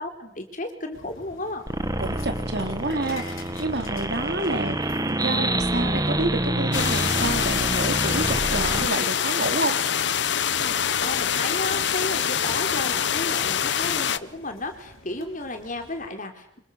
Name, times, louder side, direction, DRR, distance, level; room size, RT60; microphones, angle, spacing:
voice 1, 0.0-1.6 10.5-16.6, left 2 dB, 40° left, 5 dB, 3.9 m, -33 dB
sound 1, 0.9-16.1, left 2 dB, 85° left, 4.3 m, -48 dB
sound 2, 1.7-8.9, right 1 dB, 20° right, 1.7 m, -27 dB
voice 2, 2.0-9.8, right 2 dB, 55° right, 6 dB, 3.5 m, -29 dB
sound 3, 6.7-14.2, left 8 dB, 60° left, 1.0 m, -25 dB
27.5 x 26.0 x 6.6 m, 0.70 s
head